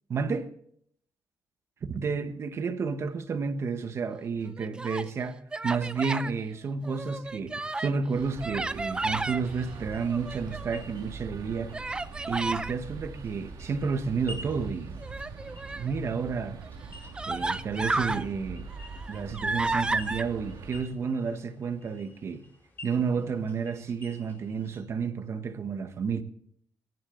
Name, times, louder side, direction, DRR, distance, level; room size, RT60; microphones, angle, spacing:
voice 1, 0.1-0.5 1.8-11.7 12.3-15.0 15.8-16.6 17.3-18.7 19.1-22.4 22.8-26.2, right 5 dB, 40° right, 1.3 m, -31 dB
Human voice, 4.5-5.1 5.5-6.3 6.8-8.0 8.4-9.4 10.0-10.8 11.7-12.7 15.0-15.9 16.6-16.7 17.1-18.2 18.7-20.2, right 2 dB, 15° right, 0.5 m, -32 dB
sound 1, 8.1-20.8, right 5 dB, 70° right, 2.1 m, -43 dB
sound 2, 8.9-24.8, left 1 dB, 30° left, 4.5 m, -52 dB
22.5 x 11.0 x 3.9 m
wide cardioid pair, 170°, 7 cm